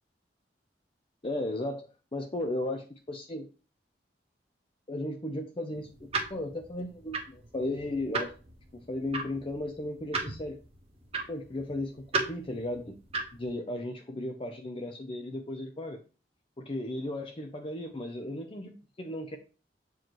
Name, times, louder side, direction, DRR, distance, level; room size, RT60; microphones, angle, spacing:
voice 1, 1.2-3.5 4.9-8.3 8.7-10.6 11.3-13.0 13.3-16.0 16.6-18.7 19.0-19.4, left 1 dB, 30° left, 4 dB, 0.7 m, -35 dB
sound 1, 5.7-13.5, right 4 dB, 35° right, 1.2 m, -37 dB
7.6 x 4.6 x 3.1 m, 0.34 s
head